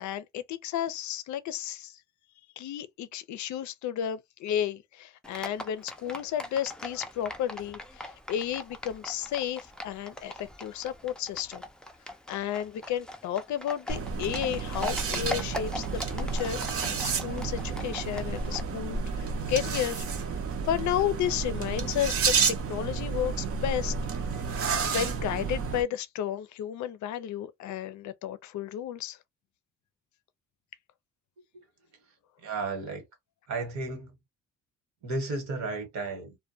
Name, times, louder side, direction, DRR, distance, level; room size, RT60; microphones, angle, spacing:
voice 1, 0.0-1.9 2.6-11.6 12.3-20.0 20.6-23.9 24.8-29.2, left 10 dB, 70° left, 0.5 m, -32 dB
Livestock farm animals working animals, 5.2-18.6, left 1 dB, 5° left, 0.4 m, -41 dB
sound 1, 13.9-25.8, right 5 dB, 50° right, 0.6 m, -31 dB
voice 2, 32.4-33.0 33.5-34.1 35.0-36.4, right 3 dB, 70° right, 1.2 m, -33 dB
2.2 x 2.2 x 2.6 m
cardioid pair, 90°, 30 cm